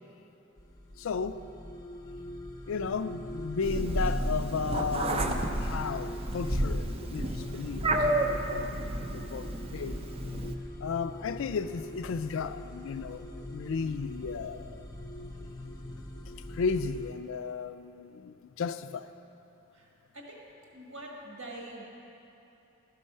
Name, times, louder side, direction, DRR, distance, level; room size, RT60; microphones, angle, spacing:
sound 1, 0.6-17.1, left 1 dB, 15° left, 0.6 m, -42 dB
voice 1, 1.0-1.5 2.7-10.0 10.8-14.9 16.5-19.1, left 5 dB, 70° left, 0.4 m, -34 dB
Meow, 3.6-10.5, right 1 dB, 30° right, 0.5 m, -31 dB
voice 2, 19.7-20.4 20.7-21.9, right 1 dB, 80° right, 1.4 m, -45 dB
12.5 x 5.4 x 5.5 m
head